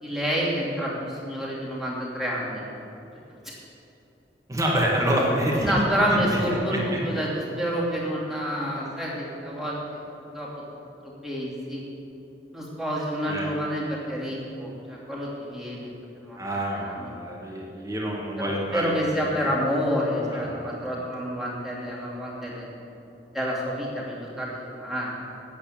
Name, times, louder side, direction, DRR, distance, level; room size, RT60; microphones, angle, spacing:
voice 1, 0.0-2.6 5.6-9.8 10.3-10.5 11.0-11.8 12.5-16.4 16.7-17.1 17.4-17.5 18.4-22.6 23.3-25.1, equal, ahead, -6 dB, 2.8 m, -28 dB
voice 2, 4.5-5.7 6.1-7.0 13.3-13.5 16.4-18.9 20.3-20.7, equal, 20° right, -3 dB, 1.9 m, -27 dB
8.5 x 8.4 x 8.7 m, 2.9 s
head